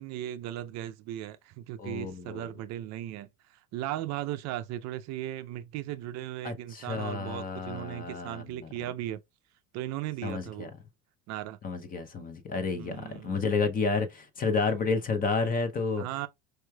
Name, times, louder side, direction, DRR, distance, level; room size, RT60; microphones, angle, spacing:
voice 1, 0.0-9.2 9.7-10.7 11.3-11.6 12.7-13.4 16.0-16.3, right 13 dB, 50° right, 0.5 m, -37 dB
voice 2, 1.8-2.5 6.4-8.9 10.2-10.7 11.6-16.0, left 4 dB, 25° left, 0.6 m, -31 dB
4.5 x 3.1 x 2.2 m
supercardioid pair, 130°, 36 cm